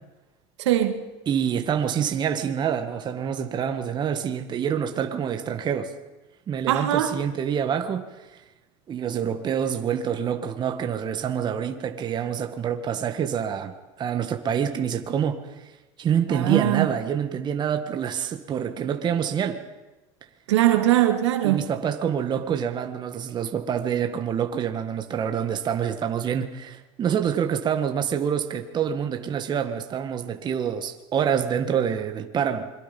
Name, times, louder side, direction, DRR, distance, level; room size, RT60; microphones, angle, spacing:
voice 1, 0.6-1.0 6.7-7.1 16.3-16.9 20.5-21.6, right 13 dB, 85° right, 2.4 m, -21 dB
voice 2, 1.3-5.9 6.5-8.0 8.9-15.7 16.0-19.6 21.4-32.7, right 8 dB, 30° right, 1.7 m, -26 dB
27.5 x 22.5 x 5.4 m
supercardioid pair, 120°, 14 cm